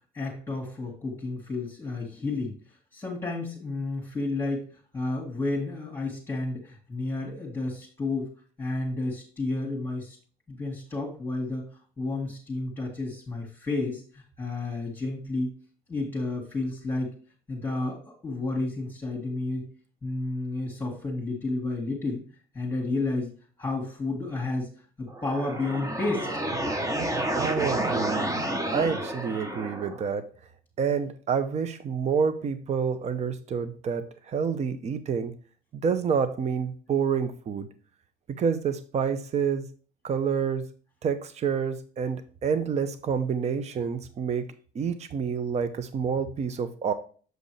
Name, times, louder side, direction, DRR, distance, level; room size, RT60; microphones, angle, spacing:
voice 1, 0.1-2.6 2.9-4.7 4.9-8.3 8.6-10.2 10.5-11.7 12.0-15.6 15.9-17.2 17.5-19.7 20.0-22.2 22.5-23.3 23.6-24.7 25.0-26.3, left 2 dB, 15° left, -3 dB, 2.0 m, -31 dB
sound 1, 25.1-30.1, right 1 dB, 20° right, 1.0 m, -30 dB
voice 2, 27.3-28.3 28.7-30.3 30.8-35.3 35.7-37.7 38.3-39.7 40.0-40.7 41.0-44.5 44.7-46.9, right 6 dB, 40° right, 11 dB, 0.7 m, -28 dB
7.7 x 5.2 x 3.3 m, 0.40 s
cardioid pair, 110°, 17 cm